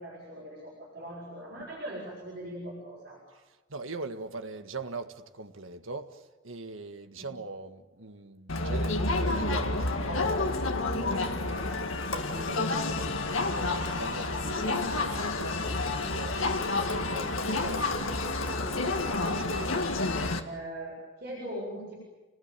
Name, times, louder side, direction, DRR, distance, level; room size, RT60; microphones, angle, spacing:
voice 1, 0.0-3.2 7.2-7.3 18.4-21.9, right 1 dB, 50° right, 7.7 m, -41 dB
voice 2, 3.3-18.6 19.4-19.8, right 3 dB, 80° right, 1.7 m, -42 dB
Crowd, 8.5-20.4, left 2 dB, 85° left, 2.0 m, -29 dB
29.5 x 19.5 x 9.2 m
head